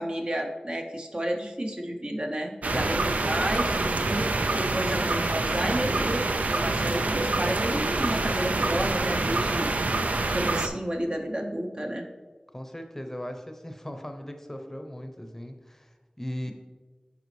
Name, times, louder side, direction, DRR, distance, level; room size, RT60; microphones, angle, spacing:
voice 1, 0.0-9.7 10.3-12.0, right 1 dB, 40° right, 2 dB, 0.7 m, -31 dB
sound 1, 2.6-10.7, right 2 dB, 80° right, 0.4 m, -26 dB
voice 2, 2.7-3.6 12.5-16.5, equal, 15° left, 5 dB, 0.7 m, -38 dB
7.8 x 4.9 x 3.2 m, 1.3 s
wide cardioid pair, 45°, 3 cm